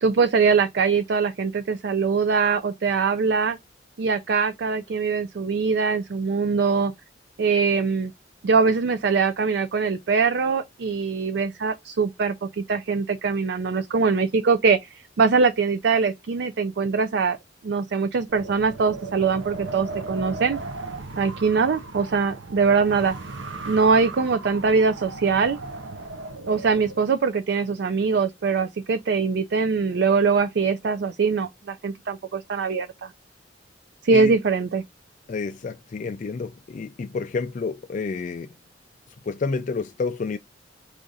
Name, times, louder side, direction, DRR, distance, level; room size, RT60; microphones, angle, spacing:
voice 1, 0.0-3.6 4.0-6.9 7.4-8.1 8.4-17.4 17.6-20.6 21.2-23.1 23.7-25.6 26.5-33.1 34.0-34.8, right 5 dB, 60° right, 0.4 m, -22 dB
Wind, 18.3-27.0, right 3 dB, 90° right, 0.7 m, -37 dB
voice 2, 35.3-38.5 39.2-40.4, left 4 dB, 40° left, 0.3 m, -29 dB
4.8 x 2.5 x 3.9 m
head